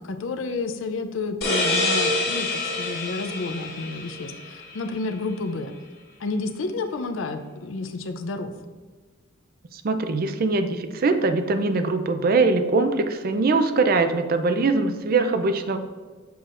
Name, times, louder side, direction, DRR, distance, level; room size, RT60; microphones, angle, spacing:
voice 1, 0.0-5.7 6.2-8.5, left 3 dB, 70° left, 7 dB, 0.5 m, -30 dB
sound 1, 1.4-4.9, left 2 dB, 55° left, 1.7 m, -26 dB
voice 2, 9.7-15.8, right 3 dB, 45° right, 8 dB, 0.4 m, -22 dB
6.9 x 5.6 x 2.5 m, 1.4 s
head